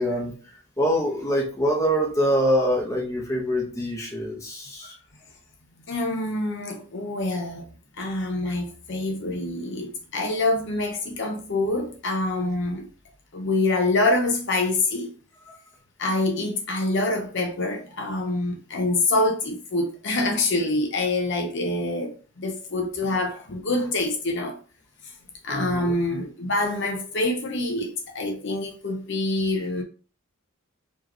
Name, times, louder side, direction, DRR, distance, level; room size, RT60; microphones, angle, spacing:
voice 1, 0.0-4.9 15.5-15.6 25.5-26.0 29.5-29.7, equal, 15° left, 1.0 m, -25 dB
voice 2, 5.8-7.6 8.0-12.9 13.3-15.1 16.0-24.6 25.4-29.8, left 2 dB, 55° left, 0.8 m, -26 dB
4.5 x 3.0 x 3.0 m
head